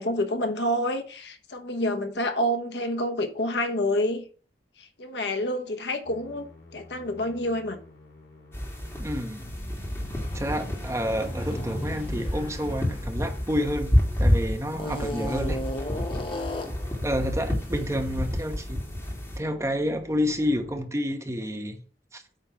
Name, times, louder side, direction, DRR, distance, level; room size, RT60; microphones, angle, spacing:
voice 1, 0.0-4.2 4.8-7.8, left 1 dB, 75° left, 1.1 m, -28 dB
Musical instrument, 6.0-20.9, left 1 dB, 60° left, 3.0 m, -50 dB
sound 1, 8.5-19.4, left 1 dB, 15° left, 2.0 m, -29 dB
voice 2, 9.0-9.5 10.3-15.6 17.0-18.8 19.4-21.8 22.1-22.2, equal, 15° right, 1.0 m, -29 dB
sound 2, 9.3-14.1 14.7-16.9, left 1 dB, 30° left, 0.9 m, -36 dB
8.9 x 3.5 x 5.7 m
head